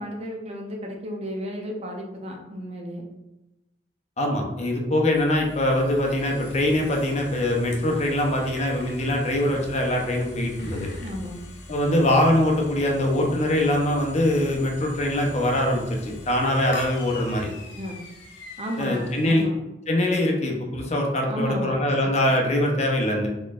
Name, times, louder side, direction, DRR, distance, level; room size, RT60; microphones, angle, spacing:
voice 1, 0.0-3.1 11.0-11.4 17.8-18.0 18.6-19.5 21.3-22.1, equal, 35° right, 2 dB, 0.5 m, -33 dB
voice 2, 4.2-10.9 11.7-17.5 18.8-19.4 19.9-23.3, left 1 dB, 40° left, 1 dB, 0.6 m, -23 dB
sound 1, 5.1-19.5, left 1 dB, 75° left, 0.8 m, -42 dB
4.1 x 3.0 x 2.4 m, 0.99 s
head